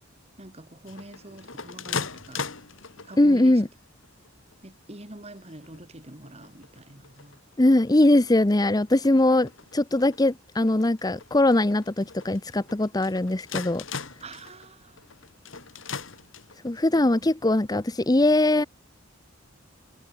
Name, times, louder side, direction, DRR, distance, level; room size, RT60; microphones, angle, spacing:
voice 1, 0.4-2.5 3.1-3.5 4.6-7.4 14.2-14.9 16.9-17.3, right 1 dB, 30° right, 2.8 m, -45 dB
sound 1, 0.9-3.4 4.0-4.5 5.0-5.1 5.3-5.9 6.3-16.8, left 5 dB, 70° left, 2.9 m, -39 dB
voice 2, 3.2-3.7 7.6-13.8 16.6-18.7, left 1 dB, 20° left, 0.7 m, -21 dB
head